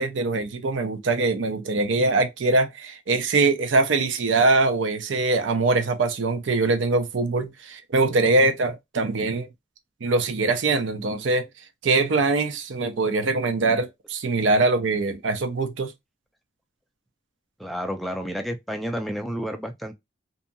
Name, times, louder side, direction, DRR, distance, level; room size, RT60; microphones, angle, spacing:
voice 1, 0.0-9.5 10.0-11.5 11.8-15.9, right 3 dB, 85° right, 0.6 m, -23 dB
voice 2, 17.6-19.9, equal, ahead, 0.4 m, -30 dB
2.7 x 2.6 x 2.2 m
head